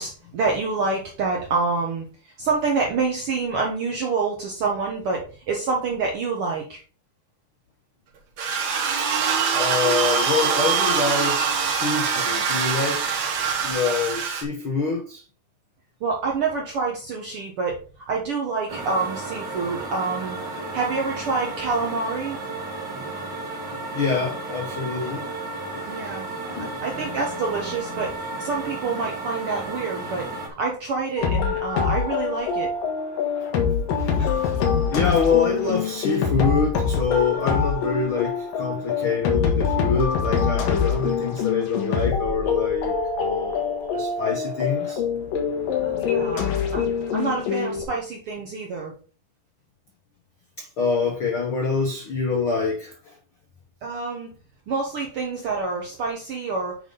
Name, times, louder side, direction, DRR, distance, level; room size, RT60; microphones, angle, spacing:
voice 1, 0.0-6.8 16.0-17.8 18.1-20.4 20.7-22.4 25.9-26.3 26.6-30.3 30.6-32.7 34.1-34.3 45.8-48.9 53.8-54.3 54.7-56.8, right 4 dB, 85° right, 1.2 m, -27 dB
sound 1, 8.4-14.4, right 6 dB, 55° right, 2.4 m, -23 dB
voice 2, 9.5-13.1 13.6-15.2 23.9-25.3 25.7-26.2 26.5-26.7 34.0-45.0 50.6-53.1, left 5 dB, 85° left, 1.1 m, -26 dB
sound 2, 18.7-30.5, right 2 dB, 40° right, 1.6 m, -33 dB
sound 3, 31.2-47.8, left 6 dB, 65° left, 3.0 m, -24 dB
8.7 x 5.2 x 3.9 m
omnidirectional pair, 4.4 m